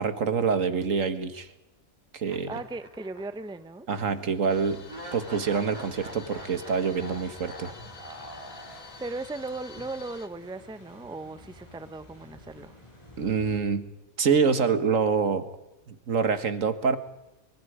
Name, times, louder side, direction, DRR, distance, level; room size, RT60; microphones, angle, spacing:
voice 1, 0.0-1.5 2.1-2.5 3.9-4.8 5.1-7.7 13.2-13.9 14.2-15.5 15.9-17.0, right 5 dB, 65° right, 11 dB, 1.9 m, -26 dB
sound 1, 2.3-3.6 3.9-4.0 4.9-9.2, right 1 dB, 25° right, 4.0 m, -44 dB
voice 2, 2.5-3.9 9.0-12.8, right 3 dB, 5° right, 12 dB, 0.8 m, -37 dB
sound 2, 4.0-13.6, left 1 dB, 20° left, 7.8 m, -52 dB
sound 3, 4.5-10.3, left 5 dB, 65° left, 2.2 m, -48 dB
25.5 x 24.5 x 5.0 m, 0.97 s
omnidirectional pair, 1.5 m